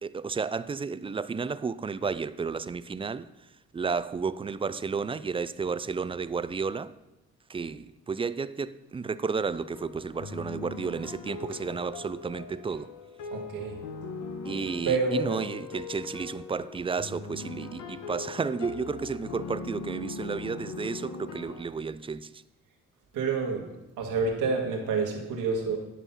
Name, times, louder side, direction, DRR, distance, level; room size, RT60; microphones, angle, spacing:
voice 1, 0.0-6.9 7.5-12.9 14.4-22.4, right 5 dB, 20° right, 0.4 m, -32 dB
sound 1, 9.5-21.6, left 4 dB, 80° left, 1.2 m, -40 dB
voice 2, 13.3-13.8 14.8-15.4 23.1-25.8, right 4 dB, 90° right, 1.8 m, -28 dB
11.0 x 5.4 x 5.6 m
cardioid pair, 90°, 30 cm